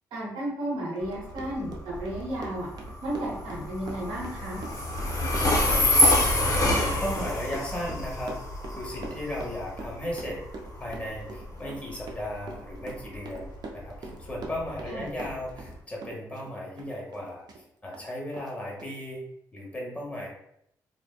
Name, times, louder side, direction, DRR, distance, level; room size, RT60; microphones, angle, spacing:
voice 1, 0.1-2.7 3.0-4.6 14.9-15.1, right 1 dB, 80° right, -5 dB, 0.9 m, -33 dB
Train, 1.0-15.8, left 1 dB, 40° left, 0.6 m, -28 dB
Run, 1.0-15.8 16.0-17.6 17.9-18.1 18.3-18.5 18.8-18.9, right 3 dB, 55° right, 0.4 m, -42 dB
voice 2, 5.4-8.4 8.7-10.4 10.8-17.4 17.8-19.2 19.5-20.3, left 1 dB, 15° left, -3 dB, 1.0 m, -36 dB
2.6 x 2.1 x 2.3 m, 0.76 s
supercardioid pair, 50°, 8 cm